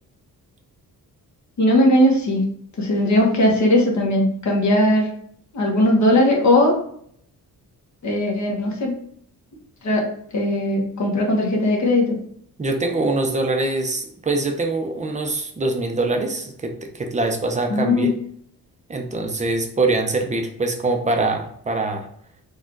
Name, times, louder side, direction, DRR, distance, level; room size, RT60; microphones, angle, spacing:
voice 1, 1.6-2.4 2.8-5.1 5.5-6.7 8.0-8.9 9.8-12.2 17.7-18.1, left 1 dB, 50° left, -1 dB, 1.3 m, -18 dB
voice 2, 12.6-18.1 18.9-22.1, right 2 dB, 20° right, 3 dB, 0.7 m, -23 dB
4.5 x 2.5 x 4.5 m, 0.63 s
wide cardioid pair, 135°, 36 cm